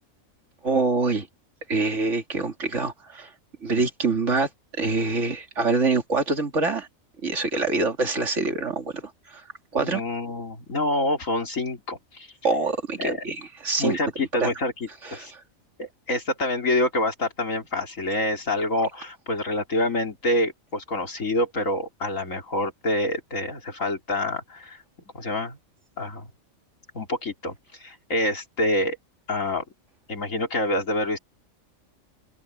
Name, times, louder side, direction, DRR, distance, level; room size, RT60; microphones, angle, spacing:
voice 1, 0.6-1.3 1.7-3.3 3.6-4.5 4.8-6.9 7.2-9.4 9.7-10.0 12.4-14.0 14.4-14.5 15.0-15.3, right 3 dB, 60° right, 2.8 m, -25 dB
voice 2, 9.8-12.3 13.0-13.2 13.8-15.3 15.8-24.8 25.1-25.6 26.0-26.3 26.9-27.5 27.8-29.0 29.3-29.6 30.1-31.2, left 1 dB, 70° left, 4.1 m, -27 dB
open air
omnidirectional pair, 1.4 m